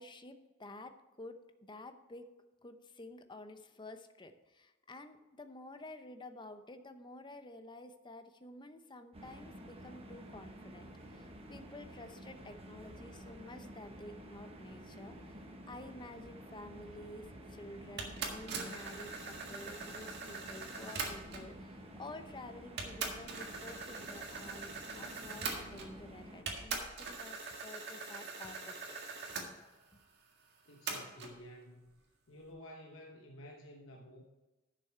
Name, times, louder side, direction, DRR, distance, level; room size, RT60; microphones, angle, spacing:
voice 1, 0.0-2.3 2.6-29.0, left 2 dB, 25° left, 8 dB, 0.7 m, -51 dB
sound 1, 9.1-26.4, right 1 dB, 30° right, 1.2 m, -51 dB
sound 2, 18.0-21.5 22.3-22.4 22.8-26.1 26.5-29.5 30.9-31.3, right 4 dB, 55° right, 1.7 m, -42 dB
voice 2, 30.7-32.0 32.3-34.2, equal, 70° left, 1 dB, 1.1 m, -52 dB
11.0 x 6.9 x 4.5 m, 1.1 s
head